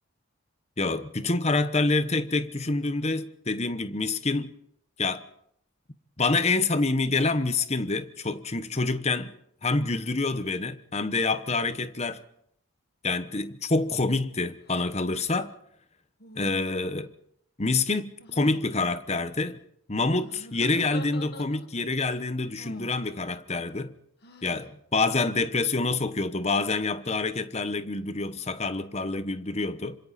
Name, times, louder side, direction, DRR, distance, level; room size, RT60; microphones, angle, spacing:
voice 1, 0.8-4.5 5.0-5.2 6.2-9.3 9.6-12.2 13.0-15.5 16.3-17.1 17.6-19.6 19.9-23.9 24.4-30.0, left 3 dB, 35° left, 1.1 m, -27 dB
sound 1, 14.6-14.9 16.2-17.1 18.2-18.8 20.1-21.9 22.6-23.0 24.2-24.7, left 1 dB, 55° left, 1.9 m, -44 dB
27.0 x 26.0 x 4.3 m
head